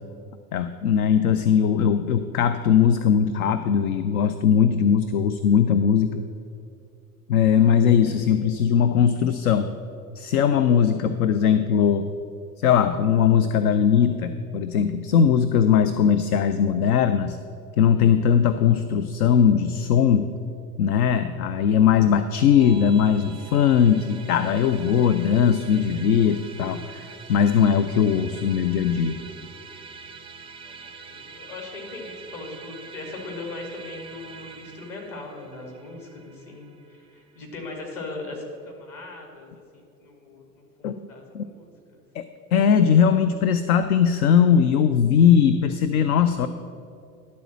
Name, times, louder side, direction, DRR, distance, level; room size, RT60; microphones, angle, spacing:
voice 1, 0.5-6.2 7.3-9.7 10.2-12.1 12.6-17.4 17.8-20.3 20.8-29.2 40.8-40.9 41.3-41.4 42.1-42.2 42.5-46.5, left 8 dB, 70° left, 10 dB, 0.5 m, -20 dB
Musical instrument, 22.6-38.1, right 5 dB, 10° right, 0.5 m, -44 dB
voice 2, 31.0-42.0, left 2 dB, 45° left, 1 dB, 2.4 m, -39 dB
11.0 x 4.2 x 7.5 m, 2.5 s
figure-of-eight pair, 75°, 46 cm